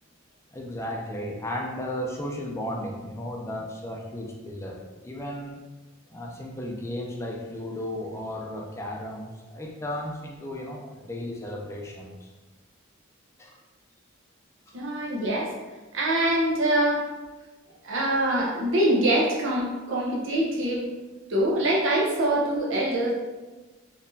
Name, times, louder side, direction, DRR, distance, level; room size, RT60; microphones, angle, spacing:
voice 1, 0.5-5.6 6.1-12.3 13.4-13.6 14.7-14.8, left 1 dB, 15° left, -1 dB, 0.5 m, -35 dB
voice 2, 14.7-15.5 15.9-17.0 17.8-20.9 21.3-23.1, right 1 dB, 60° right, -3 dB, 0.7 m, -24 dB
4.2 x 3.0 x 2.6 m, 1.2 s
head